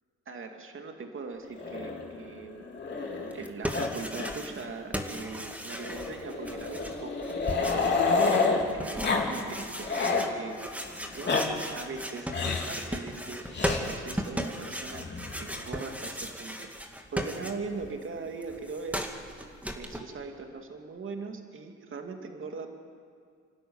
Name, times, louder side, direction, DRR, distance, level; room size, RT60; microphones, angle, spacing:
voice 1, 0.3-2.6 3.3-7.1 7.6-8.0 8.7-10.6 11.1-13.5 13.8-15.1 15.4-16.7 17.1-19.0 19.7-22.7, right 4 dB, 40° right, 4 dB, 2.5 m, -40 dB
Growling, 1.6-3.4 3.7-4.3 4.6-4.7 5.8-8.6 9.0-9.3 9.6-10.3 11.0-11.4 12.3-12.7 13.5-13.8 14.9-15.6, left 4 dB, 35° left, 3.6 m, -29 dB
sound 1, 3.3-4.7 4.9-17.9 18.2-20.0, equal, 5° right, 2.3 m, -37 dB
28.5 x 12.5 x 9.7 m, 2.1 s
cardioid pair, 90°, 30 cm